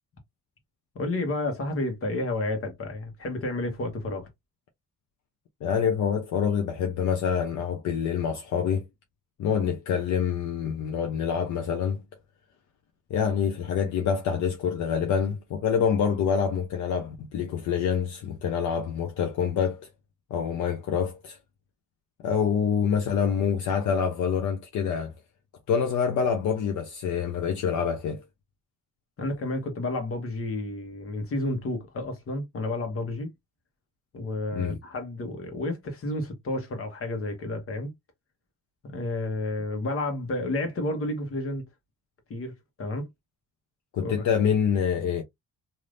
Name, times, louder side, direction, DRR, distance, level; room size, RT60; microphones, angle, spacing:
voice 1, 0.9-4.3 29.2-33.3 34.1-37.9 38.8-41.6 42.3-43.1 44.0-44.3, left 2 dB, 45° left, 1.2 m, -31 dB
voice 2, 5.6-8.8 9.4-12.0 13.1-19.9 20.3-21.4 22.2-25.1 25.7-28.2 34.5-34.8 43.9-45.2, left 7 dB, 65° left, 0.7 m, -26 dB
3.4 x 2.7 x 2.5 m
cardioid pair, 130°, 32 cm